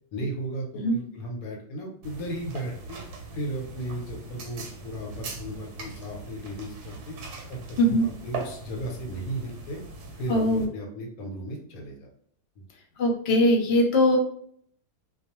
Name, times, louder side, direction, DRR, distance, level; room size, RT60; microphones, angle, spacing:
voice 1, 0.1-3.0 3.3-7.2 7.5-9.8 10.2-12.1 12.6-12.7, right 1 dB, 75° left, 1 dB, 1.0 m, -35 dB
sound 1, 2.0-10.6, right 3 dB, 90° right, 1.2 m, -40 dB
voice 2, 7.8-8.1 10.3-10.6 13.0-14.2, left 1 dB, 60° left, 1 dB, 0.7 m, -21 dB
2.3 x 2.3 x 2.9 m, 0.63 s
omnidirectional pair, 1.6 m